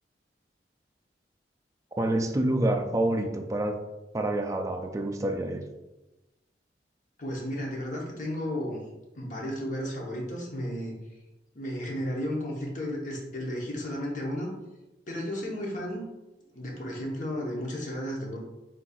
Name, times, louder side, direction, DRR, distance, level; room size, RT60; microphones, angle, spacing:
voice 1, 2.0-3.8 4.1-5.6, right 1 dB, 20° right, 4 dB, 0.3 m, -27 dB
voice 2, 7.2-8.8 9.1-10.9 11.5-14.5 15.1-16.0 16.5-18.4, equal, 45° left, -1 dB, 0.9 m, -33 dB
4.2 x 3.8 x 2.4 m, 1.0 s
head